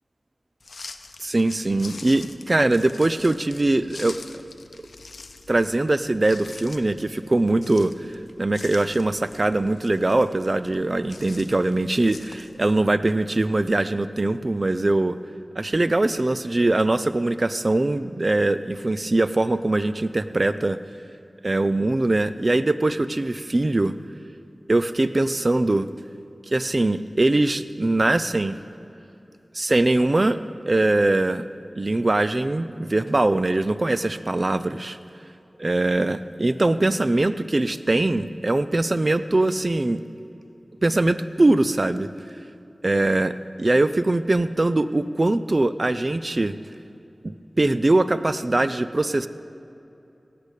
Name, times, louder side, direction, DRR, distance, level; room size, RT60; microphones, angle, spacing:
sound 1, 0.6-12.8, left 3 dB, 85° left, 0.6 m, -45 dB
voice 1, 1.2-4.2 5.5-15.2 15.6-20.8 21.4-24.0 24.7-25.9 26.5-28.6 29.5-30.4 30.7-31.4 31.8-35.0 35.6-40.0 40.8-42.1 42.8-46.5 47.6-49.3, right 2 dB, 45° right, 13 dB, 0.4 m, -22 dB
17.5 x 6.8 x 8.2 m, 2.8 s
wide cardioid pair, 55°, 0 cm